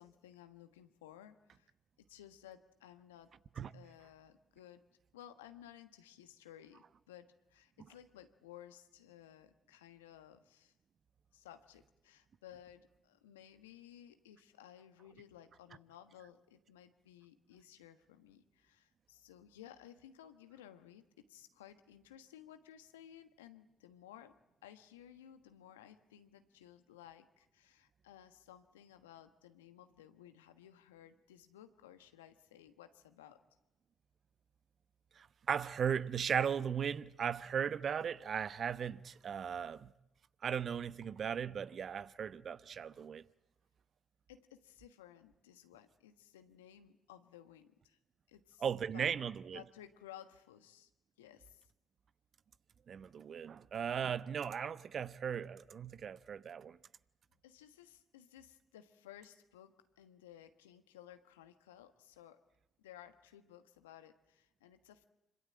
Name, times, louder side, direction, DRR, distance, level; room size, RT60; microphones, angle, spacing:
voice 1, 0.0-1.7 2.1-3.4 3.7-4.8 5.1-10.7 11.3-33.4 44.3-48.0 48.3-48.7 48.9-49.2 49.5-50.9 51.2-51.7 57.4-62.5 62.8-65.1, left 11 dB, 85° left, 1.4 m, -57 dB
voice 2, 35.2-39.9 40.4-43.2 48.6-49.6 52.9-56.8, right 7 dB, 55° right, 1.0 m, -37 dB
26.0 x 25.5 x 8.8 m
hypercardioid pair, 45°, 0 cm